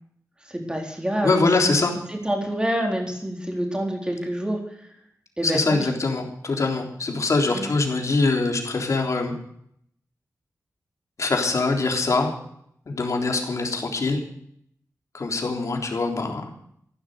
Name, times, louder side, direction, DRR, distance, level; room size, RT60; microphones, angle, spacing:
voice 1, 0.5-1.3 2.1-4.6 5.4-5.9 7.5-7.7, right 1 dB, 15° right, 1 dB, 4.1 m, -27 dB
voice 2, 1.2-1.9 5.4-9.3 11.2-12.3 12.9-14.2 15.1-16.5, left 3 dB, 55° left, 2 dB, 3.6 m, -23 dB
15.5 x 11.5 x 6.6 m, 0.69 s
wide cardioid pair, 135°, 6 cm